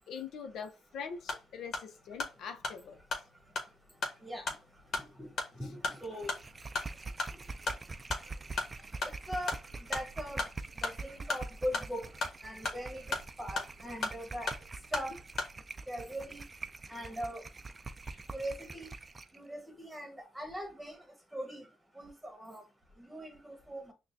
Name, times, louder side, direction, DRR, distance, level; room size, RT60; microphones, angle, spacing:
voice 1, 0.1-3.0 18.0-18.2, left 6 dB, 75° left, 0.7 m, -43 dB
sound 1, 1.1-15.6, left 3 dB, 55° left, 1.2 m, -39 dB
voice 2, 5.6-6.3 9.3-10.4 10.8-12.1 12.4-13.0 13.4-14.5 14.9-15.1 15.9-16.4 16.9-17.4 18.3-18.9 19.3-21.0 21.3-21.6 21.9-22.6 23.0-23.9, equal, 10° right, 1.4 m, -40 dB
sound 2, 6.0-19.4, right 3 dB, 30° right, 0.4 m, -45 dB
6.0 x 2.2 x 2.7 m
cardioid pair, 90°, 0 cm